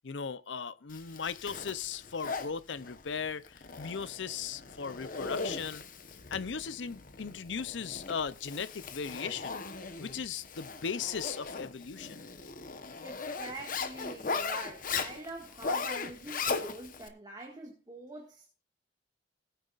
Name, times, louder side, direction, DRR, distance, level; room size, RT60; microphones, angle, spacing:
voice 1, 0.0-5.8 6.3-9.6 10.0-12.2, left 6 dB, 75° left, 0.6 m, -37 dB
Zipper (clothing), 0.9-17.1, left 4 dB, 50° left, 1.1 m, -38 dB
voice 2, 13.0-18.5, right 1 dB, 20° right, 1.8 m, -44 dB
20.5 x 9.2 x 2.5 m
head